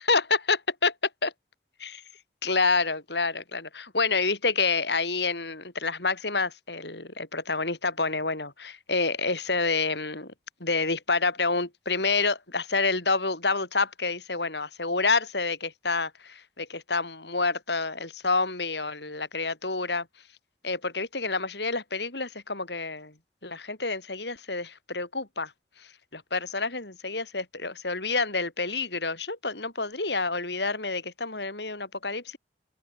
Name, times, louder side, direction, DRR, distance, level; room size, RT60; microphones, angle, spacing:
voice 1, 2.4-10.3 10.6-20.1 20.6-23.1 23.4-25.5 26.1-32.4, left 3 dB, 70° left, 6.2 m, -28 dB
open air
head